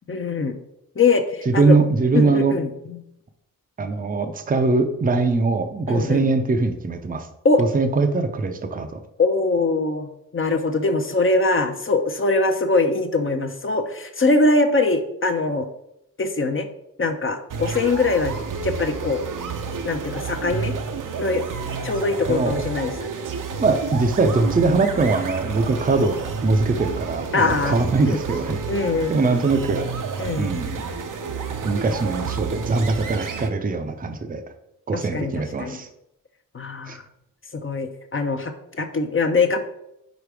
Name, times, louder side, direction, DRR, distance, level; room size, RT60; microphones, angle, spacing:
voice 1, 0.1-0.6 1.0-1.8 2.1-3.0 5.9-6.3 7.4-7.6 9.2-10.1 10.3-15.7 16.2-16.7 17.0-18.3 18.6-19.2 19.8-20.7 21.2-21.4 21.8-23.1 27.3-27.8 28.0-28.2 28.7-29.4 30.2-30.5 34.9-35.8 36.5-37.0 37.5-39.6, left 3 dB, 35° left, 6 dB, 0.7 m, -22 dB
voice 2, 1.5-2.5 3.8-7.3 7.6-9.0 22.3-22.6 23.6-28.6 29.1-29.9 30.4-30.8 31.6-34.4 34.9-35.9 36.9-37.0, right 3 dB, 25° right, 7 dB, 0.6 m, -21 dB
sound 1, 17.5-33.5, right 5 dB, 65° right, 0.7 m, -30 dB
5.1 x 3.9 x 4.7 m, 0.81 s
cardioid pair, 70°, 35 cm